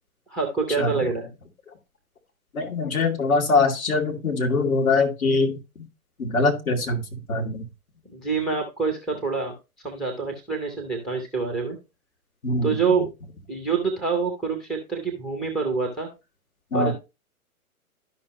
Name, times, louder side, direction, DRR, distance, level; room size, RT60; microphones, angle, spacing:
voice 1, 0.3-1.3 8.1-9.5 9.8-11.8 12.6-13.1 13.5-16.1 16.7-16.9, right 5 dB, ahead, 2 dB, 0.5 m, -26 dB
voice 2, 2.5-5.6 6.2-7.0 7.3-7.6 12.4-12.7 16.7-16.9, left 3 dB, 65° left, 4 dB, 2.4 m, -22 dB
12.0 x 5.5 x 2.9 m, 0.27 s
figure-of-eight pair, 120°, 45 cm